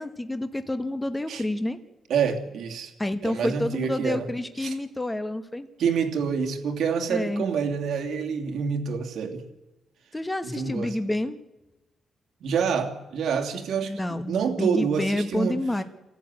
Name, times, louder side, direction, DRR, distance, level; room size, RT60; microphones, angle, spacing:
voice 1, 0.0-1.8 3.0-5.7 7.1-7.5 10.1-11.4 13.9-15.8, left 1 dB, 10° left, 1.1 m, -28 dB
voice 2, 2.1-2.9 3.2-4.3 4.6-4.7 5.8-9.4 10.4-10.9 12.4-15.6, right 6 dB, 70° right, 2.8 m, -27 dB
26.5 x 14.0 x 9.6 m
wide cardioid pair, 155°, 0 cm